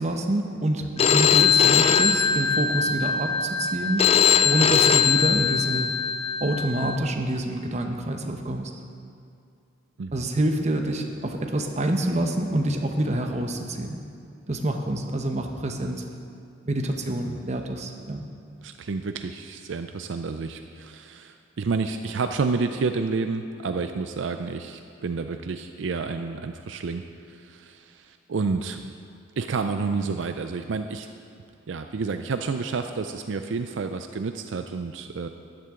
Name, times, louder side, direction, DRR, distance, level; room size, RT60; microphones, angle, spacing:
voice 1, 0.0-4.0 4.4-5.9 6.4-8.7 10.1-14.0 14.5-16.0 16.6-18.2, right 1 dB, 35° right, 4 dB, 0.9 m, -27 dB
Telephone, 1.0-7.0, left 7 dB, 30° left, 0.3 m, -21 dB
voice 2, 18.6-27.0 27.3-28.9 29.4-31.1 31.7-35.3, right 4 dB, 75° right, 7 dB, 0.5 m, -30 dB
14.0 x 10.5 x 3.7 m, 2.4 s
head